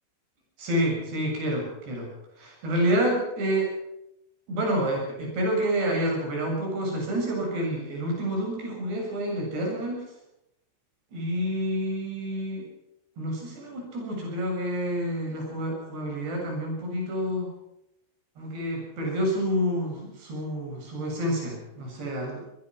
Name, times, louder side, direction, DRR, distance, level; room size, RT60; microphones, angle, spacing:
voice 1, 0.6-2.1 2.4-3.7 4.5-10.0 11.1-12.7 13.2-17.5 18.4-22.4, equal, 75° right, 0 dB, 9.1 m, -28 dB
25.0 x 19.5 x 6.1 m, 0.86 s
omnidirectional pair, 4.9 m